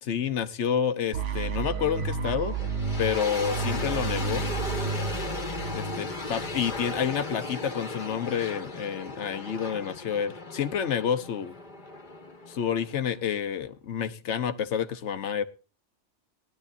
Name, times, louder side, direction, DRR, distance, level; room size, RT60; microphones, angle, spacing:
voice 1, 0.0-2.6 3.0-4.4 5.7-11.5 12.5-15.4, left 8 dB, 70° left, 11 dB, 1.2 m, -29 dB
sound 1, 1.1-7.1, right 5 dB, 80° right, 1.4 m, -32 dB
sound 2, 2.5-13.4, left 3 dB, 40° left, 1.4 m, -36 dB
19.0 x 11.5 x 2.6 m, 0.32 s
omnidirectional pair, 1.2 m